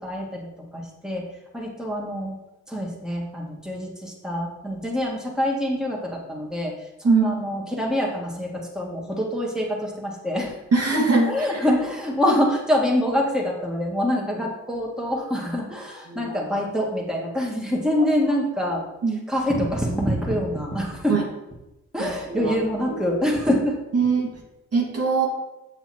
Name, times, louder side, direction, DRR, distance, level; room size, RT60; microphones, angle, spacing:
voice 1, 0.0-0.4 0.7-1.2 1.5-2.3 2.7-10.6 11.3-18.8 19.3-21.2 21.9-23.8, left 1 dB, ahead, -2 dB, 2.2 m, -25 dB
voice 2, 10.7-11.6 16.1-16.3 19.0-19.2 21.1-21.2 22.0-22.5 22.9-23.0 23.9-24.3 24.7-25.3, right 4 dB, 55° right, -1 dB, 2.1 m, -22 dB
7.2 x 5.7 x 4.4 m, 0.96 s
supercardioid pair, 60°, 30 cm